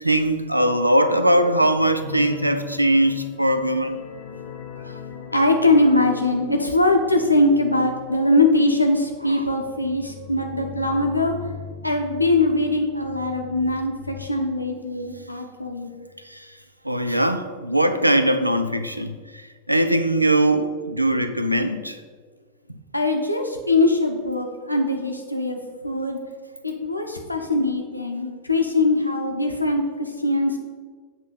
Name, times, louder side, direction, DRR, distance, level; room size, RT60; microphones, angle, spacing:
voice 1, 0.0-4.0 16.3-16.4 16.8-19.2 19.7-22.0, right 1 dB, 85° right, 0.5 m, -20 dB
sound 1, 2.0-15.3 15.6-15.8 16.2-16.3, left 7 dB, 40° left, 0.9 m, -40 dB
voice 2, 5.3-11.5 11.8-15.9 22.9-26.2 26.6-30.6, left 2 dB, 85° left, 0.9 m, -21 dB
7.9 x 3.2 x 6.4 m
figure-of-eight pair, 90°, 0 cm